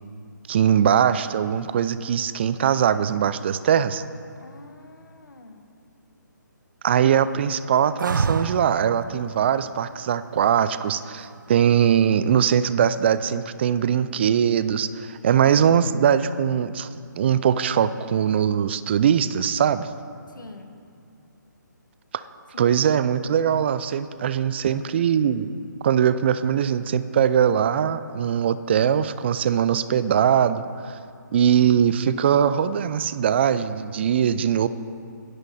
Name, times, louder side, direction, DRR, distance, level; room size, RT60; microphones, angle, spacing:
voice 1, 0.5-4.0 6.8-16.9 17.1-19.9 22.6-25.5 25.8-31.0 31.3-34.7, right 8 dB, 35° right, 14 dB, 0.5 m, -21 dB
voice 2, 4.4-5.7 20.3-20.8 22.5-23.0 24.3-25.3, left 1 dB, 80° left, 6 dB, 1.7 m, -46 dB
sound 1, 8.0-8.9 11.5-12.1, right 4 dB, 75° right, 0.6 m, -26 dB
21.5 x 9.8 x 4.3 m, 2.4 s
figure-of-eight pair, 150°, 10 cm